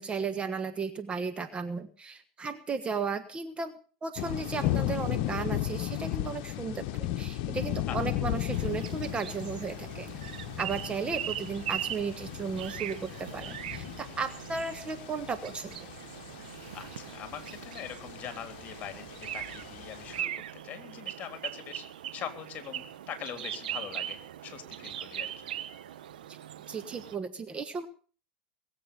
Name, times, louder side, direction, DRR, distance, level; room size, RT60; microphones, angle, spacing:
voice 1, 0.0-3.7 4.0-10.1 10.6-15.9 26.3-26.4 26.7-27.9, right 5 dB, 25° right, 9 dB, 1.3 m, -35 dB
sound 1, 4.2-20.2, left 13 dB, 55° left, 1.1 m, -36 dB
sound 2, 8.5-27.2, right 11 dB, 75° right, 1.0 m, -40 dB
voice 2, 16.7-21.8 22.1-25.5, left 9 dB, 35° left, 8 dB, 3.4 m, -42 dB
21.0 x 8.0 x 6.9 m, 0.41 s
hypercardioid pair, 95°, 5 cm